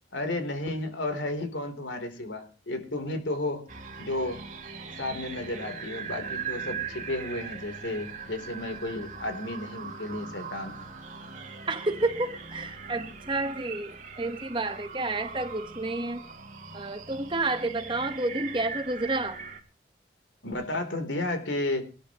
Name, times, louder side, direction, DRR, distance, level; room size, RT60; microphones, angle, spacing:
voice 1, 0.1-3.7 4.0-4.4 5.0-10.9 20.4-21.9, left 2 dB, 90° left, 7 dB, 3.7 m, -32 dB
sound 1, 3.7-19.6, right 5 dB, 40° right, 2.5 m, -40 dB
voice 2, 11.7-16.2 16.7-19.4, right 2 dB, 25° right, 8 dB, 1.3 m, -30 dB
22.5 x 12.5 x 3.1 m, 0.34 s
head